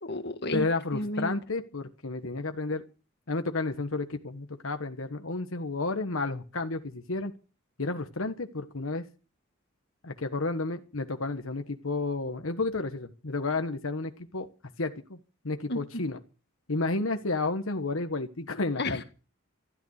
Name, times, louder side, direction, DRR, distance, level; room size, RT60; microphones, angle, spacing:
voice 1, 0.0-0.7 0.9-1.4 15.7-16.0 18.8-19.0, left 1 dB, 55° left, 8 dB, 1.9 m, -32 dB
voice 2, 0.5-2.8 3.3-7.3 7.8-9.1 10.0-14.5 14.8-15.2 15.4-16.2 16.7-19.0, left 3 dB, 85° left, 7 dB, 1.4 m, -31 dB
13.5 x 12.5 x 6.6 m, 0.35 s
head